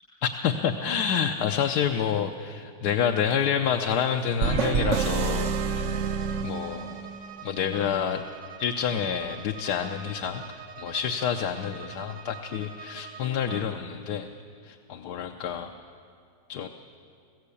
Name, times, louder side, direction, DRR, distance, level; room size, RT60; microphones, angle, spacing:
voice 1, 0.2-5.9 6.4-7.0 7.4-8.2 8.6-10.4 10.8-14.3 14.6-15.7 16.5-16.7, left 8 dB, 70° left, 4 dB, 1.3 m, -28 dB
sound 1, 4.4-7.2, right 6 dB, 60° right, 0.8 m, -27 dB
Bowed string instrument, 5.2-13.7, right 7 dB, 75° right, 1.7 m, -45 dB
21.0 x 15.5 x 8.4 m, 2.3 s
omnidirectional pair, 1.9 m